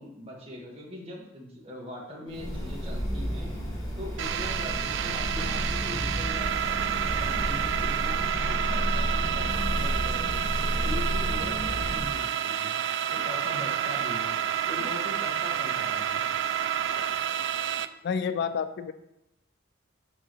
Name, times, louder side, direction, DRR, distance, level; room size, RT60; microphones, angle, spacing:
voice 1, 0.0-3.5 4.0-10.3 10.8-14.4 14.7-16.3, left 1 dB, 30° right, -2 dB, 1.4 m, -41 dB
sound 1, 2.3-12.1, equal, 20° left, 1.5 m, -31 dB
sound 2, 4.2-17.9, right 9 dB, 65° right, 0.3 m, -29 dB
voice 2, 18.0-18.9, left 6 dB, 55° left, 11 dB, 0.3 m, -29 dB
7.5 x 4.7 x 3.1 m, 0.88 s
head